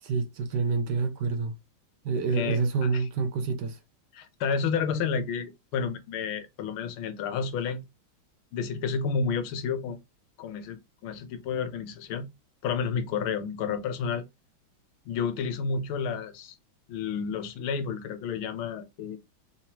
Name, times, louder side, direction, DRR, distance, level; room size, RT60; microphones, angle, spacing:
voice 1, 0.0-1.5 2.0-3.8, right 4 dB, 65° right, 1.1 m, -27 dB
voice 2, 2.3-3.0 4.1-7.8 8.5-10.0 10.4-12.3 12.6-14.2 15.1-16.6 16.9-19.2, left 6 dB, 85° left, 1.6 m, -31 dB
5.5 x 3.1 x 2.9 m
omnidirectional pair, 2.2 m